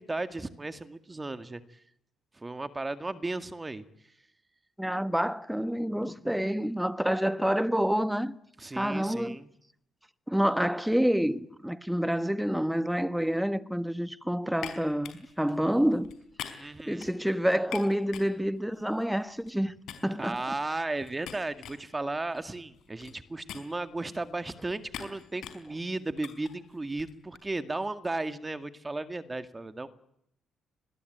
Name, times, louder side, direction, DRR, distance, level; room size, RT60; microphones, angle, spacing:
voice 1, 0.0-1.6 2.3-3.9 8.6-9.5 16.6-17.0 20.2-29.9, right 2 dB, 20° right, 2.0 m, -35 dB
voice 2, 4.8-8.4 8.7-9.4 10.3-16.1 16.5-16.6 16.9-19.8 20.0-20.4, equal, 5° right, 1.4 m, -28 dB
sound 1, 14.6-19.6 19.9-27.4, left 9 dB, 80° left, 4.8 m, -46 dB
27.0 x 21.0 x 9.4 m
cardioid pair, 90°, 0 cm